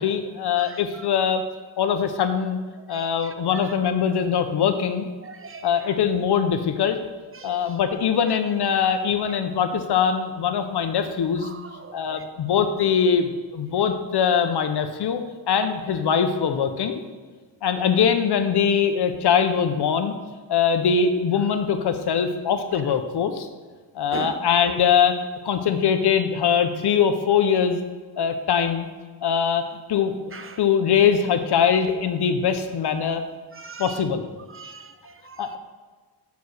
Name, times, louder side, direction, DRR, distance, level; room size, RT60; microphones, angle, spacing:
voice 1, 0.0-1.4 1.8-2.6 2.9-5.1 5.6-7.0 7.4-11.5 11.9-15.2 15.5-17.0 17.6-20.1 20.5-23.5 23.9-25.2 25.4-27.8 28.2-28.9 29.2-29.6 29.9-30.3 30.6-33.2 33.8-34.3 35.4-35.6, left 7 dB, 65° left, 8 dB, 0.8 m, -22 dB
voice 2, 5.2-5.7 7.4-7.6 11.8-12.0 24.1-24.4 30.3-30.5 33.6-34.0 34.5-35.4, right 6 dB, 35° right, 10 dB, 0.4 m, -38 dB
6.9 x 4.6 x 6.4 m, 1.4 s
cardioid pair, 100°, 42 cm